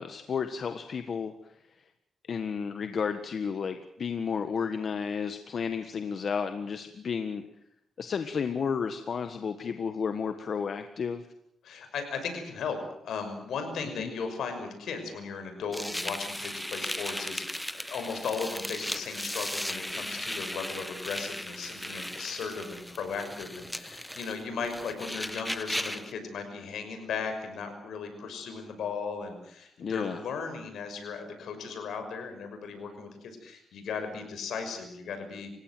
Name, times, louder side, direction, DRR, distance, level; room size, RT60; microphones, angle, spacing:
voice 1, 0.0-1.3 2.3-7.4 8.0-11.2 14.0-14.1 29.8-30.2, left 6 dB, 55° left, 9 dB, 1.5 m, -32 dB
voice 2, 11.6-35.5, left 5 dB, 80° left, 6 dB, 6.0 m, -36 dB
sound 1, 15.7-26.1, left 1 dB, 5° left, 1.2 m, -36 dB
28.5 x 16.5 x 7.9 m, 0.75 s
cardioid pair, 95°, 0 cm